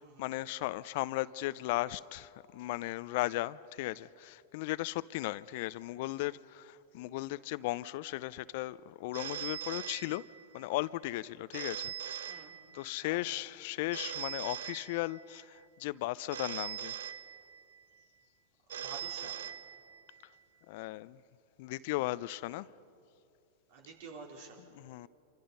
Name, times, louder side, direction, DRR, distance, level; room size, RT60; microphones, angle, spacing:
voice 1, 0.2-10.2 10.5-12.5 12.7-16.9 20.7-21.2 21.6-22.7 24.7-25.1, left 18 dB, 60° left, 0.5 m, -36 dB
Telephone, 9.1-10.6 11.5-13.0 13.9-15.4 16.3-17.8 18.7-20.2, right 9 dB, 80° right, 0.6 m, -41 dB
voice 2, 12.3-12.6 13.0-13.3 18.7-19.4 23.7-24.6, right 4 dB, 60° right, 4.3 m, -49 dB
27.0 x 25.0 x 5.5 m
hypercardioid pair, 100°, 0 cm